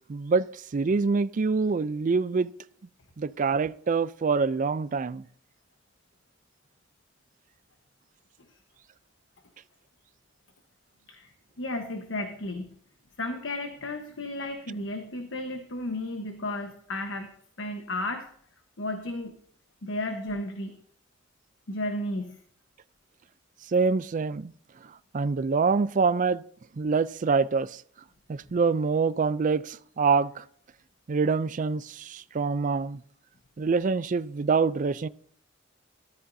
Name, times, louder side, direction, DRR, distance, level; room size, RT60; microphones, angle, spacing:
voice 1, 0.1-0.5 0.7-2.5 3.2-5.2 23.7-24.5 25.1-26.4 26.8-27.7 28.3-30.4 31.1-33.0 33.6-35.1, right 4 dB, 40° right, 0.4 m, -25 dB
voice 2, 11.6-12.8 13.2-17.3 17.6-18.2 18.8-19.3 19.8-20.8 21.7-22.4 28.5-28.6, left 1 dB, 75° left, 1.2 m, -33 dB
14.0 x 13.0 x 2.7 m
head